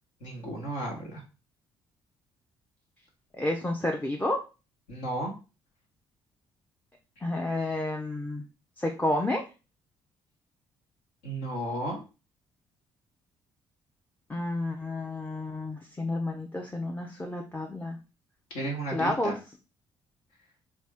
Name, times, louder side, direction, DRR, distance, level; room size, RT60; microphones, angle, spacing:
voice 1, 0.2-1.2 4.9-5.3 11.2-12.0 18.5-19.4, right 1 dB, 65° left, 1 dB, 1.2 m, -33 dB
voice 2, 3.4-4.4 7.2-8.4 8.8-9.4 14.3-18.0 18.9-19.3, left 1 dB, 10° left, 1 dB, 0.6 m, -30 dB
4.1 x 2.4 x 3.4 m, 0.31 s
figure-of-eight pair, 45°, 14 cm